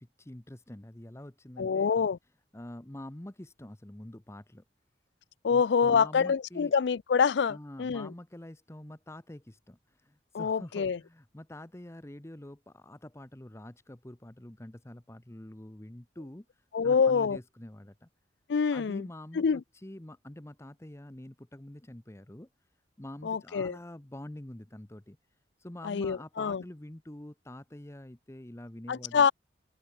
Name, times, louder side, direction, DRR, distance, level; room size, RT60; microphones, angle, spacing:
voice 1, 0.0-1.9 2.5-4.6 5.5-6.7 7.5-16.5 16.8-18.1 18.7-22.5 23.0-25.2 25.6-29.2, left 1 dB, 15° left, 0.9 m, -46 dB
voice 2, 1.6-2.2 5.4-8.1 10.3-11.0 16.7-17.4 18.5-19.0 19.4-19.6 23.2-23.8 25.8-26.6 28.9-29.3, left 6 dB, 70° left, 0.4 m, -26 dB
head